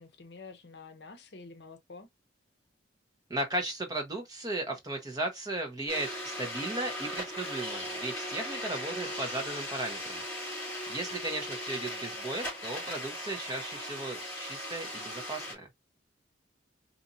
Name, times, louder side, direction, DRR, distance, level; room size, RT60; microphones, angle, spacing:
voice 1, 0.0-2.1, left 4 dB, 55° left, 0.7 m, -48 dB
voice 2, 3.3-10.2 10.9-15.7, right 2 dB, 20° right, 1.1 m, -36 dB
sound 1, 5.9-15.5, left 1 dB, 10° left, 2.8 m, -38 dB
4.3 x 2.8 x 2.6 m
head